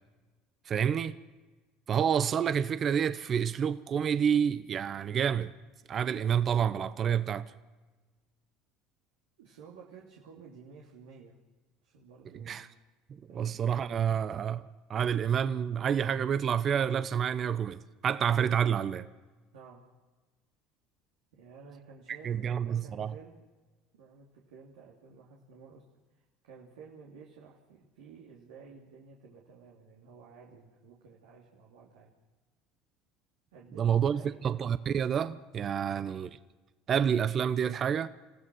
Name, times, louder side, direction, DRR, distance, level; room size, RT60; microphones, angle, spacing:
voice 1, 0.7-1.1 1.9-5.5 5.9-7.5 12.5-12.7 13.1-19.1 22.2-23.1 33.8-36.3 36.9-38.1, right 8 dB, 40° right, 0.9 m, -28 dB
voice 2, 9.4-11.3 11.8-12.7 13.3-13.6 19.5-19.9 21.3-23.4 23.9-25.8 26.1-32.1 33.5-34.5, right 5 dB, 75° right, 2.9 m, -53 dB
27.0 x 15.5 x 6.4 m
hypercardioid pair, 70°, 0 cm